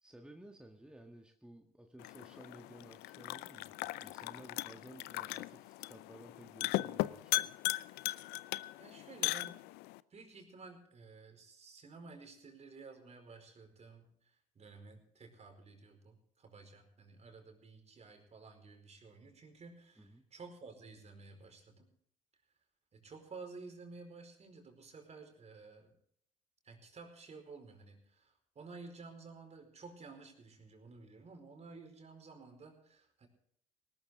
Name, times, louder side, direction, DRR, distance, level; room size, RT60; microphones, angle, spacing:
voice 1, 0.0-7.5 20.0-20.2, right 1 dB, 5° right, 3 dB, 1.6 m, -55 dB
sound 1, 2.0-10.0, left 18 dB, 70° left, 0.6 m, -38 dB
voice 2, 8.8-9.6 10.1-21.9 22.9-26.0 26.6-33.3, right 4 dB, 40° right, 5 dB, 4.7 m, -53 dB
19.0 x 13.0 x 3.8 m, 0.68 s
hypercardioid pair, 60°, 17 cm